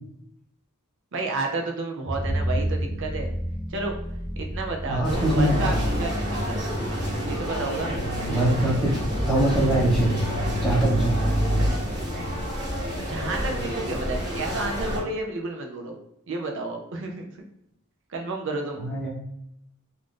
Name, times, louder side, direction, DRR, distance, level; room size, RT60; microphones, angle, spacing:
voice 1, 1.1-3.3 3.7-4.0 4.4-6.8 7.3-8.0 8.2-8.5 13.1-16.0 16.3-17.3 18.1-18.8, right 3 dB, 60° right, 2 dB, 0.5 m, -31 dB
sound 1, 2.1-11.7, equal, 45° left, 0.8 m, -28 dB
voice 2, 4.8-5.8 8.3-9.0 9.3-10.1 10.6-11.3 18.8-19.1, right 1 dB, ahead, -5 dB, 0.8 m, -23 dB
sound 2, 5.0-15.0, equal, 20° right, 1.0 m, -30 dB
2.5 x 2.4 x 3.5 m, 0.77 s
head